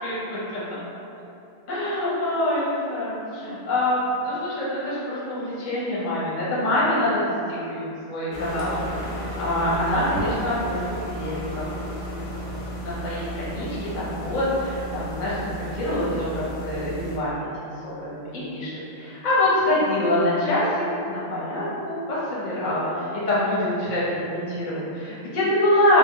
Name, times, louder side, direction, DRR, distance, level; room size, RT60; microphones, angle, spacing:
voice 1, 0.0-0.8 1.7-11.7 12.8-17.5 17.8-26.0, left 1 dB, 50° left, -8 dB, 0.8 m, -25 dB
sound 1, 8.3-17.2, equal, 85° left, 0.9 m, -33 dB
2.1 x 2.1 x 3.6 m, 2.8 s
omnidirectional pair, 1.1 m